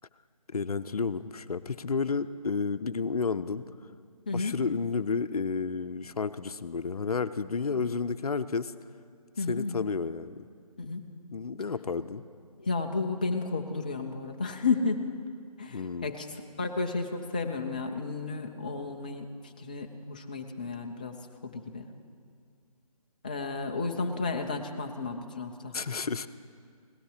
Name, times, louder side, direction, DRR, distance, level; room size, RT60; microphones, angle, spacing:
voice 1, 0.5-3.6 4.3-8.7 9.5-10.5 11.3-12.2 15.7-16.1 25.7-26.3, left 5 dB, 70° left, 13 dB, 0.6 m, -31 dB
voice 2, 9.4-9.9 10.8-11.1 12.6-15.0 15.6-16.3 16.6-21.2 21.4-21.9 23.2-25.7, left 4 dB, 15° left, 3 dB, 0.4 m, -32 dB
17.5 x 12.5 x 4.9 m, 2.2 s
figure-of-eight pair, 150°, 20 cm